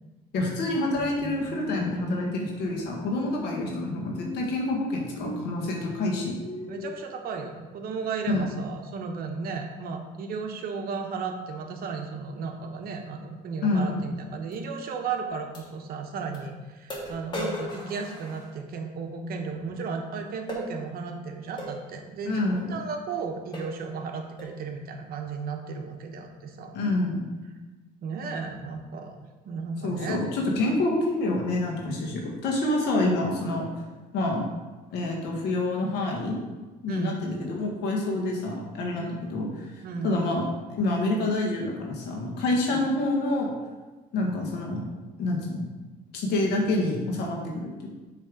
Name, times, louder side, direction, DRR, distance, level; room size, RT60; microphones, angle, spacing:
voice 1, 0.3-6.3 8.3-8.4 13.6-14.0 22.2-22.7 26.7-27.4 29.8-33.7 34.1-34.5 34.9-36.4 36.8-39.7 40.0-40.4 40.7-43.5 44.1-44.8 45.2-45.6 46.1-47.9, left 2 dB, 80° left, -1 dB, 1.6 m, -27 dB
sound 1, 0.9-6.9, left 1 dB, 45° left, 1.3 m, -38 dB
voice 2, 6.7-26.7 28.0-29.2 29.4-30.2 36.9-37.2 38.9-39.2 39.8-40.3 42.7-42.9, right 5 dB, 60° right, 4 dB, 1.0 m, -34 dB
sound 2, 14.5-14.6 15.5-15.7 16.3-16.4 16.9-18.9 20.5-20.7 21.6-21.8 22.6-22.7 23.1-23.2 23.5-23.8 24.4-24.6, left 1 dB, 25° left, 1.9 m, -37 dB
7.3 x 3.3 x 5.0 m, 1.2 s
cardioid pair, 110°, 17 cm